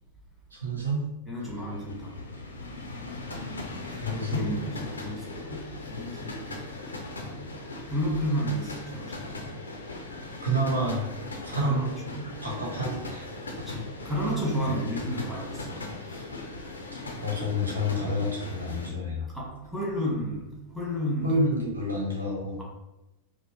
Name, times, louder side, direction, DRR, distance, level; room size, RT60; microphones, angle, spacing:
voice 1, 0.5-1.0 1.4-1.5 4.0-4.5 10.4-11.1 11.4-11.9 12.2-13.3 14.6-14.7 17.2-19.3 21.2-22.6, equal, 75° right, -2 dB, 1.1 m, -29 dB
voice 2, 1.3-2.2 3.9-6.4 7.2-7.6 7.9-9.6 11.6-12.4 13.6-16.3 19.3-20.5 20.7-21.4, equal, 5° right, -6 dB, 1.5 m, -32 dB
sound 1, 1.5-18.9, left 2 dB, 75° left, 0.6 m, -39 dB
5.1 x 2.0 x 3.0 m, 0.99 s
figure-of-eight pair, 90°, 0 cm